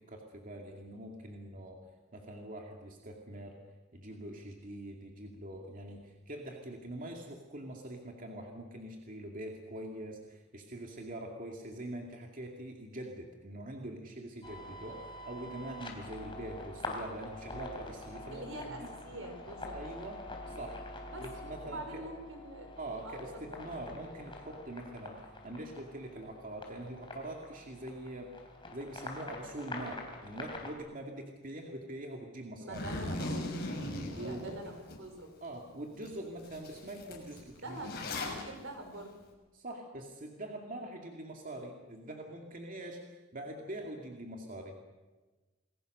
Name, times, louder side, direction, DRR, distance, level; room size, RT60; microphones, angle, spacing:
voice 1, 0.0-1.8 2.1-3.6 3.9-18.9 19.7-20.8 21.2-22.1 22.8-28.3 28.7-32.8 34.1-34.8 35.4-37.8 39.5-44.8, right 1 dB, 45° right, 1 dB, 2.5 m, -44 dB
sound 1, 14.4-30.7, left 2 dB, 25° left, 3.9 m, -46 dB
voice 2, 18.3-19.8 21.1-21.3 21.6-22.7 23.0-23.6 32.6-33.8 34.1-35.3 37.6-39.2, right 1 dB, 80° right, 4 dB, 5.3 m, -45 dB
Zipper (clothing), 32.7-35.0 35.4-35.5 36.0-36.1 36.4-38.4, left 2 dB, 55° left, 6.0 m, -38 dB
28.5 x 21.0 x 6.6 m, 1.2 s
head